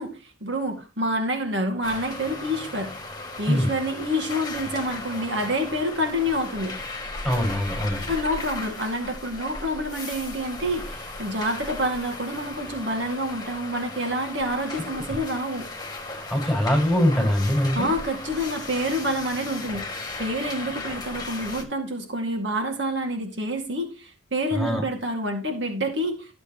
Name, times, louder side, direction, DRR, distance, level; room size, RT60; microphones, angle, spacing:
voice 1, 0.0-2.9 3.4-6.7 8.1-15.7 17.7-26.4, equal, 65° right, 3 dB, 2.3 m, -28 dB
sound 1, 1.8-21.6, left 2 dB, 20° left, 2.1 m, -36 dB
voice 2, 7.2-8.1 14.9-15.2 16.1-17.9 24.5-24.9, equal, ahead, -2 dB, 5.2 m, -23 dB
13.0 x 7.6 x 3.1 m, 0.31 s
head